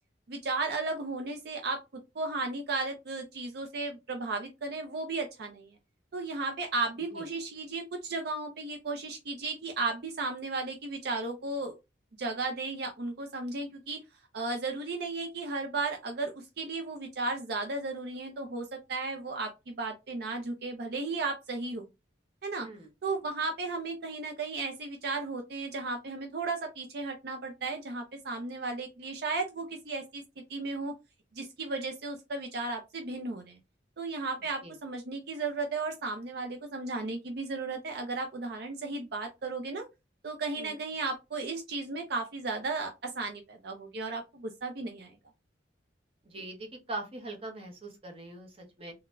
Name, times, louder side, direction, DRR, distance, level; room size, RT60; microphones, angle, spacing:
voice 1, 0.3-1.8 2.1-5.7 6.1-11.7 12.2-14.0 14.3-21.9 22.4-22.7 23.0-30.2 30.5-30.9 31.3-33.6 34.0-39.8 40.2-45.1, right 3 dB, 60° right, 4 dB, 0.5 m, -34 dB
voice 2, 46.2-48.9, right 2 dB, 30° right, 2 dB, 0.9 m, -42 dB
3.9 x 2.1 x 2.5 m, 0.24 s
head